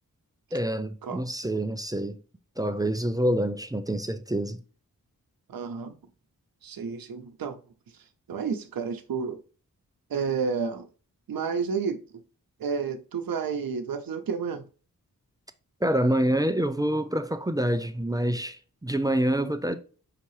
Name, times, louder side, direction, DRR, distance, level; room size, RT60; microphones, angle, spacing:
voice 1, 0.5-2.2 2.6-4.6 15.8-19.8, right 1 dB, 10° right, 0.4 m, -26 dB
voice 2, 5.5-5.9 6.6-7.6 8.3-9.4 10.1-10.9 11.3-12.0 12.6-14.6, right 6 dB, 80° right, 0.7 m, -30 dB
5.7 x 2.8 x 3.0 m
wide cardioid pair, 115°, 35 cm